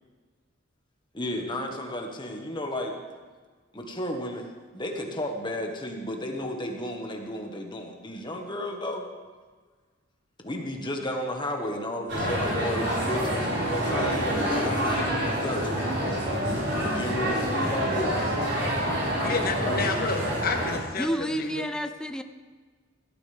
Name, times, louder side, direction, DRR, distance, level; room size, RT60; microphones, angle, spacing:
voice 1, 1.1-3.0 3.7-9.0 10.4-15.9 16.8-18.2 19.2-19.8, left 1 dB, 25° left, 1.6 m, -33 dB
sound 1, 12.1-20.8, equal, 60° right, 5.3 m, -27 dB
voice 2, 19.2-21.5, left 4 dB, 50° left, 1.5 m, -30 dB
voice 3, 21.0-22.2, equal, 5° left, 0.6 m, -29 dB
17.5 x 13.5 x 3.6 m
head